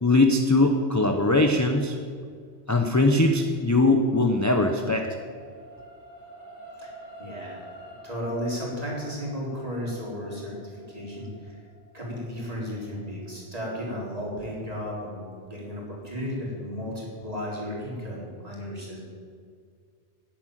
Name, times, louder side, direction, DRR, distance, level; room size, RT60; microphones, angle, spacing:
voice 1, 0.0-2.0 2.7-5.1, left 2 dB, 15° left, 4 dB, 0.9 m, -21 dB
sound 1, 3.6-16.0 16.5-16.7, right 1 dB, 80° left, 3.4 m, -49 dB
voice 2, 7.2-7.6 8.0-11.6 11.9-19.0, equal, 30° right, -4 dB, 4.4 m, -34 dB
12.0 x 10.0 x 9.2 m, 2.1 s
omnidirectional pair, 1.2 m